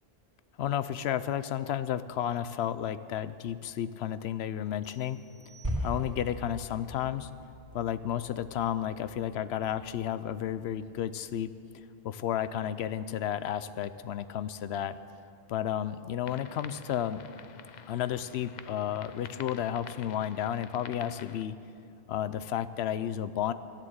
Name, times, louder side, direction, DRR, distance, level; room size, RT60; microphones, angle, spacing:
voice 1, 0.6-5.2 5.8-7.3 7.7-11.5 12.0-15.0 15.5-17.2 17.9-21.6 22.1-23.5, left 10 dB, 85° left, 14 dB, 0.9 m, -32 dB
sound 1, 4.8-6.4, right 5 dB, 75° right, 1.9 m, -60 dB
sound 2, 5.6-10.0, equal, 15° right, 3.1 m, -39 dB
sound 3, 16.3-21.4, left 7 dB, 50° left, 0.6 m, -49 dB
14.5 x 10.5 x 7.9 m, 2.6 s
omnidirectional pair, 1.0 m